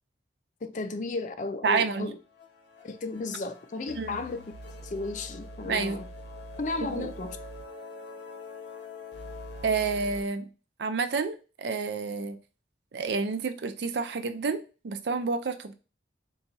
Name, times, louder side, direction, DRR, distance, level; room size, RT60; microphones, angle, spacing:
voice 1, 0.6-2.2 2.8-4.4 4.8-6.1 6.6-7.4, left 3 dB, 45° left, 0.4 m, -34 dB
voice 2, 1.6-2.1 4.0-4.2 5.6-6.0 6.8-7.1 9.6-10.5 10.8-12.4 12.9-14.6 14.8-15.7, right 4 dB, 70° right, 0.5 m, -29 dB
sound 1, 1.7-1.8 2.0-2.1 2.4-10.2, left 2 dB, 70° left, 0.8 m, -44 dB
3.9 x 2.4 x 4.0 m
head